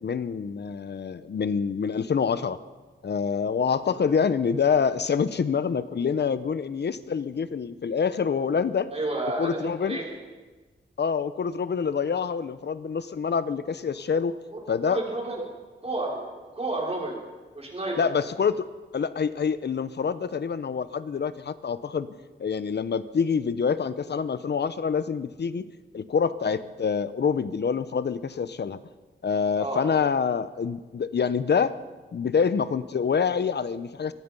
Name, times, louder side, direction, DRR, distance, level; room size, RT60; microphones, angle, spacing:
voice 1, 0.0-2.6 3.0-8.9 9.4-10.0 11.0-14.3 14.7-15.0 18.0-18.7 18.9-22.1 22.4-25.7 25.9-28.8 29.2-31.8 32.1-34.1, left 6 dB, 60° left, 13 dB, 1.0 m, -26 dB
voice 2, 8.9-10.1 14.5-15.4 15.8-17.2 17.5-18.1 29.6-29.8, right 2 dB, 30° right, -2 dB, 6.0 m, -31 dB
24.5 x 19.0 x 5.6 m, 1.3 s
wide cardioid pair, 120°, 20 cm